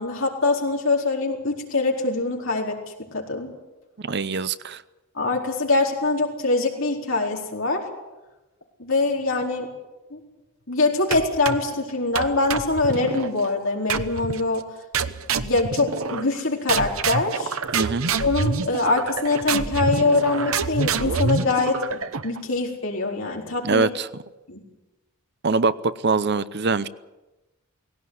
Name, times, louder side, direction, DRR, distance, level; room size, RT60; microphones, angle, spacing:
voice 1, 0.0-2.8 3.1-3.5 5.1-7.8 8.8-9.7 10.1-10.2 10.7-14.6 15.4-17.6 18.2-23.9 24.5-24.6, left 3 dB, 60° left, 0 dB, 4.3 m, -23 dB
voice 2, 4.0-4.8 17.7-18.1 23.6-24.1 25.4-26.9, right 4 dB, 50° right, 15 dB, 0.7 m, -23 dB
sound 1, 11.1-11.7 12.1-13.3 13.9-14.4 14.9-16.4 16.7-22.4, right 4 dB, 70° right, 1.0 m, -27 dB
18.5 x 17.0 x 9.5 m, 1.1 s
head